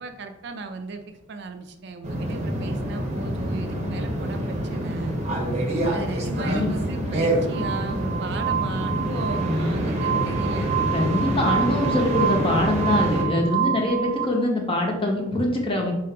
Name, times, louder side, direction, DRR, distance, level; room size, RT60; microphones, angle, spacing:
voice 1, 0.0-5.2 5.9-10.8 13.6-14.0, right 3 dB, 60° right, 7 dB, 0.4 m, -36 dB
sound 1, 2.0-13.2, right 1 dB, 35° right, 0.7 m, -26 dB
Glass, 7.5-14.2, right 10 dB, 55° left, 1.0 m, -28 dB
voice 2, 10.9-15.9, left 1 dB, 30° left, 1 dB, 0.7 m, -24 dB
3.8 x 2.5 x 4.4 m, 0.94 s
head